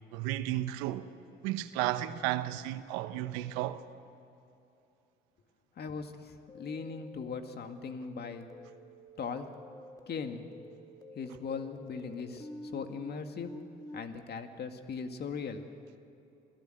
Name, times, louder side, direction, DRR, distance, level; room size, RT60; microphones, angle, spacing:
voice 1, 0.1-1.1 1.4-3.8, right 14 dB, 90° right, 1.0 m, -33 dB
voice 2, 5.8-8.5 9.2-9.5 10.1-10.4 11.1-13.5 13.9-15.7, left 5 dB, 55° left, 2.1 m, -39 dB
sound 1, 6.5-14.0, left 1 dB, 15° left, 2.3 m, -49 dB
28.0 x 17.0 x 7.9 m
supercardioid pair, 65°, 20 cm